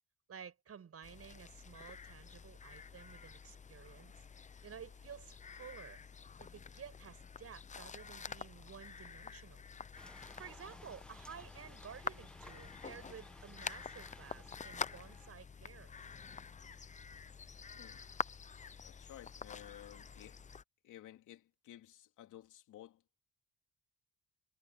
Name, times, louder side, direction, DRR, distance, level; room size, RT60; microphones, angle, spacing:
voice 1, 0.3-4.1 4.6-6.0 6.4-9.6 10.4-16.0, right 7 dB, 50° right, 6.5 m, -53 dB
sound 1, 1.0-20.6, left 6 dB, 25° left, 0.6 m, -48 dB
photocopier copying, 10.0-15.3, equal, 5° left, 1.5 m, -58 dB
voice 2, 18.8-20.4 20.8-23.0, left 13 dB, 80° left, 3.6 m, -55 dB
cardioid pair, 90°, 30 cm